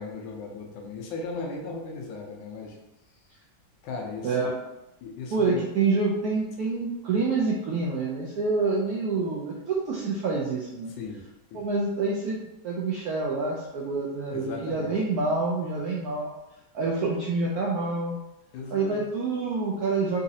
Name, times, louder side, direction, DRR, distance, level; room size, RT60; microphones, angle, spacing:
voice 1, 0.0-2.8 3.8-4.4 5.0-5.6 11.0-11.2 11.5-11.7 14.3-14.9 18.5-19.0, left 3 dB, 80° left, 0 dB, 1.4 m, -36 dB
voice 2, 5.3-10.9 11.5-12.4 12.6-16.3 16.7-18.2 18.7-20.2, right 3 dB, 75° right, -4 dB, 0.8 m, -27 dB
4.0 x 2.4 x 2.7 m, 0.95 s
omnidirectional pair, 2.1 m